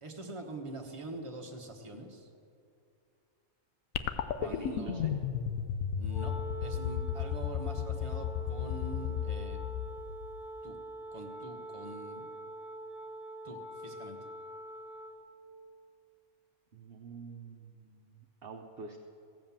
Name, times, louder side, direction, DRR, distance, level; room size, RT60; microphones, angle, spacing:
voice 1, 0.0-2.3 4.4-5.1 6.0-6.3 6.6-9.6 10.6-10.8 11.1-12.3 13.4-14.2, right 1 dB, 25° right, 1 dB, 1.2 m, -44 dB
sound 1, 3.9-10.5, left 9 dB, 90° left, 1.1 m, -34 dB
voice 2, 4.4-5.1 16.7-19.0, right 4 dB, 50° right, 2 dB, 0.9 m, -46 dB
Wind instrument woodwind instrument, 6.1-15.3, right 1 dB, 50° left, 1.5 m, -44 dB
15.5 x 7.6 x 7.3 m, 2.5 s
omnidirectional pair, 1.4 m